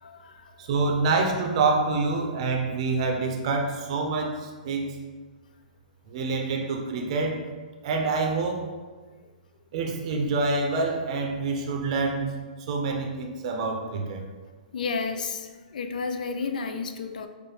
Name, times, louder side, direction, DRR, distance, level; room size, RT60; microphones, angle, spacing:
voice 1, 0.0-0.5 14.7-17.3, left 4 dB, 70° left, 0.4 m, -32 dB
voice 2, 0.6-5.0 6.1-7.4 7.8-8.7 9.7-12.3 12.7-14.2, right 3 dB, 50° right, 0.6 m, -26 dB
5.0 x 2.1 x 3.1 m
hypercardioid pair, 140°, 5 cm